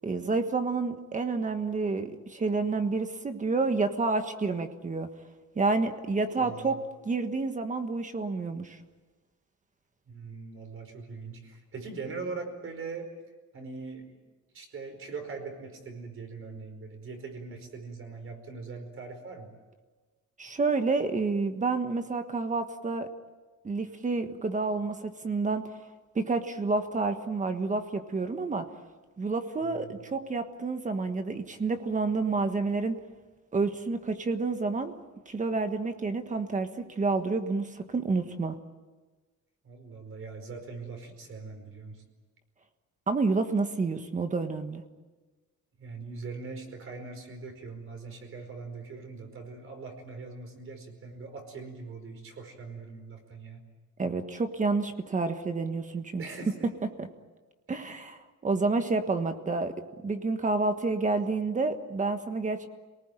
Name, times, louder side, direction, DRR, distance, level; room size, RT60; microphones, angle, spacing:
voice 1, 0.0-5.1 5.5-6.8 7.0-8.8 20.4-23.1 23.6-25.6 26.1-28.7 29.2-33.0 33.5-34.9 35.3-38.6 43.1-44.8 54.0-56.2 57.0-57.1 57.7-59.7 60.0-62.7, right 3 dB, 25° right, 7 dB, 1.4 m, -29 dB
voice 2, 6.2-6.7 10.1-13.1 13.5-14.2 14.5-19.5 29.6-30.0 39.6-42.0 45.8-53.6 56.2-56.7, right 4 dB, 45° right, 5 dB, 4.9 m, -41 dB
28.0 x 19.0 x 9.1 m, 1.3 s
cardioid pair, 165°, 30 cm